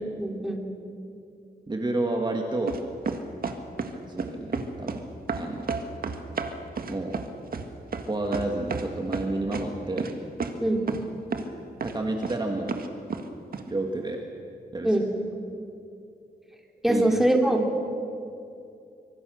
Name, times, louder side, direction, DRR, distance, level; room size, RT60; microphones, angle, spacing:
voice 1, 0.2-0.6 10.6-10.9 14.8-15.1 16.8-17.6, right 1 dB, ahead, 1 dB, 3.1 m, -22 dB
voice 2, 1.7-2.8 3.9-5.0 5.4-5.7 6.9-7.2 8.1-10.1 11.8-12.8 13.7-14.3 14.7-15.0 16.9-17.1, right 2 dB, 25° right, 2 dB, 2.0 m, -30 dB
sound 1, 2.7-3.9 4.2-5.0 5.3-8.9 9.1-9.7 10.0-10.1 10.4-10.5 10.9-11.0 11.3-11.5 11.8-12.3 12.7-13.2 13.5-13.6, right 5 dB, 60° right, 1.8 m, -31 dB
25.0 x 24.0 x 6.5 m, 2.6 s
wide cardioid pair, 130°, 17 cm